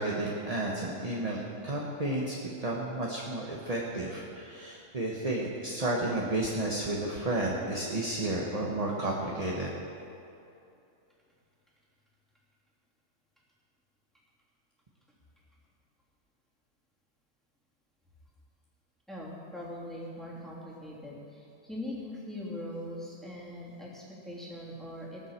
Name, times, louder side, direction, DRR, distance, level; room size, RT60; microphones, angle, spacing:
voice 1, 0.0-9.7, right 2 dB, 30° right, -2 dB, 1.3 m, -32 dB
voice 2, 19.1-25.3, left 1 dB, ahead, -6 dB, 3.1 m, -41 dB
18.5 x 7.4 x 7.4 m, 2.7 s
omnidirectional pair, 1.3 m